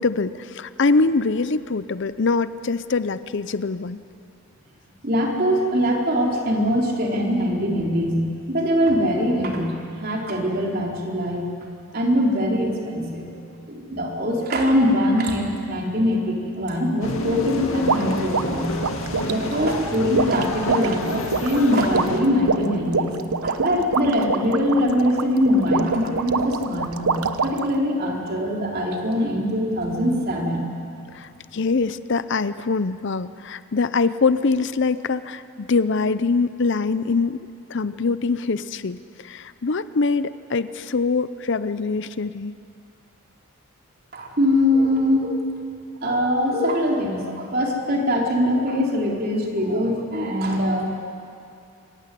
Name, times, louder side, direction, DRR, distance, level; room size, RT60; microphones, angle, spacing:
voice 1, 0.0-4.0 31.1-37.4 37.7-42.5, left 4 dB, 55° left, 14 dB, 0.6 m, -23 dB
voice 2, 5.0-11.5 11.9-13.3 13.7-18.8 19.2-23.2 23.4-30.7 44.1-45.4 46.0-50.9, equal, 45° right, -1 dB, 3.7 m, -22 dB
sound 1, 17.0-22.2, left 1 dB, 70° left, 2.3 m, -29 dB
sound 2, 17.9-27.8, right 4 dB, 85° right, 1.0 m, -26 dB
26.5 x 15.5 x 9.9 m, 2.4 s
head